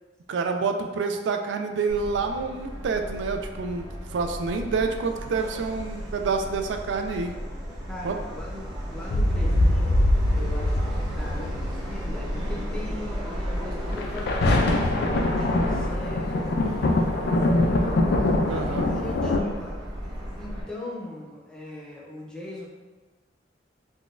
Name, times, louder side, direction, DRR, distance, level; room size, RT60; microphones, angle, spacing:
voice 1, 0.3-3.8 4.1-7.3 8.0-8.2 18.5-18.9, right 4 dB, 80° right, 5 dB, 0.3 m, -28 dB
Subway metro underground, 1.9-20.6, equal, 25° right, 0.8 m, -34 dB
voice 2, 7.9-10.0 10.3-18.0 18.5-19.8 20.4-22.7, left 1 dB, 5° left, -5 dB, 0.6 m, -40 dB
sound 1, 9.1-12.7 13.9-19.4, left 1 dB, 60° left, 0.3 m, -23 dB
3.8 x 2.2 x 2.5 m, 1.3 s
head